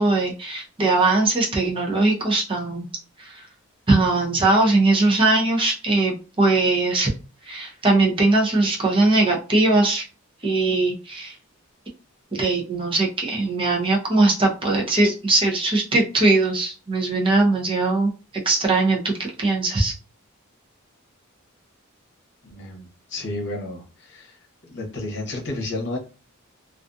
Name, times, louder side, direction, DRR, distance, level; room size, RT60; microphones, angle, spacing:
voice 1, 0.0-2.8 3.2-3.4 3.9-7.1 7.4-10.1 10.4-11.3 12.4-18.1 18.4-19.9, right 2 dB, 25° right, -1 dB, 0.5 m, -20 dB
voice 2, 22.4-26.0, left 2 dB, 55° left, 1 dB, 0.8 m, -32 dB
2.4 x 2.3 x 2.5 m, 0.33 s
head